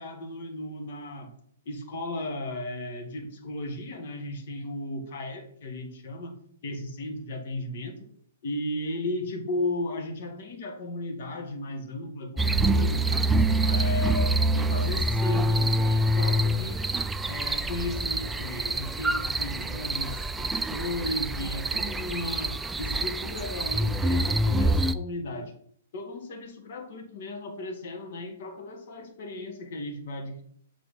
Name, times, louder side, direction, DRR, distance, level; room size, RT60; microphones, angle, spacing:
voice 1, 0.0-1.3 1.7-6.3 6.6-8.0 8.4-13.2 13.6-16.8 17.3-25.5 25.9-30.4, left 1 dB, 55° left, 3 dB, 1.9 m, -35 dB
sound 1, 12.4-24.9, right 1 dB, 10° right, 0.4 m, -26 dB
8.1 x 3.7 x 5.3 m, 0.62 s
figure-of-eight pair, 115°, 0 cm